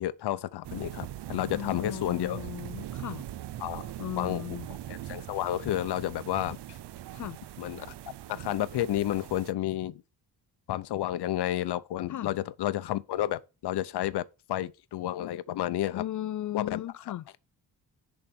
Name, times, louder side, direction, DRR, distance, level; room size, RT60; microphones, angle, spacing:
voice 1, 0.0-2.4 3.6-4.4 4.9-6.6 7.6-7.9 8.3-10.0 10.7-16.0 16.5-16.8, left 13 dB, 70° left, 0.8 m, -31 dB
sound 1, 0.6-9.5, right 12 dB, 75° right, 0.7 m, -41 dB
voice 2, 1.5-3.3 4.0-4.7 7.1-7.4 12.1-12.3 15.9-17.2, left 12 dB, 50° left, 0.4 m, -36 dB
10.5 x 4.1 x 6.1 m
wide cardioid pair, 145°, 41 cm